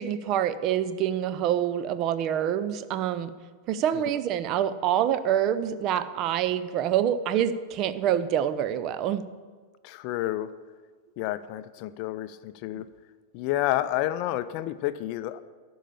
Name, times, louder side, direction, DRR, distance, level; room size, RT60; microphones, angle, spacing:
voice 1, 0.0-3.3 3.7-9.2, right 10 dB, 40° right, 13 dB, 0.6 m, -26 dB
voice 2, 9.8-10.5 11.2-12.9 13.3-15.4, left 14 dB, 45° left, 14 dB, 0.5 m, -30 dB
12.0 x 5.6 x 8.5 m, 1.5 s
figure-of-eight pair, 90°, 0 cm